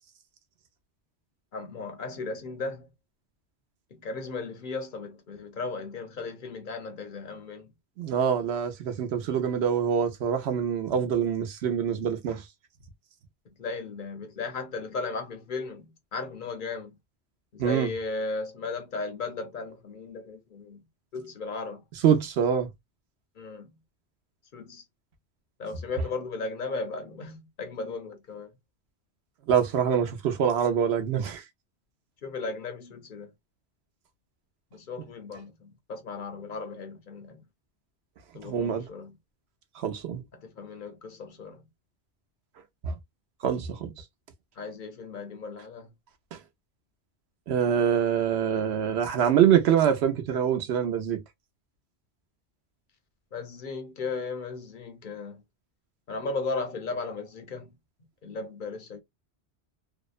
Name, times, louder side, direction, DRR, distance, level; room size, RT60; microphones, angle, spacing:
voice 1, 1.5-2.9 3.9-7.7 13.6-16.9 17.5-20.8 21.1-21.8 23.4-23.7 24.5-24.8 25.6-28.5 32.2-33.3 34.7-37.4 38.3-39.1 40.3-41.6 44.6-45.9 53.3-55.4 56.1-57.7 58.2-59.0, left 3 dB, 55° left, 0.7 m, -36 dB
voice 2, 8.0-12.4 17.6-17.9 22.0-22.7 29.5-31.4 38.4-38.8 39.8-40.2 42.8-43.0 43.4-43.9 46.3-46.4 47.5-51.2, right 8 dB, 75° right, 0.9 m, -25 dB
2.8 x 2.0 x 2.3 m
omnidirectional pair, 1.1 m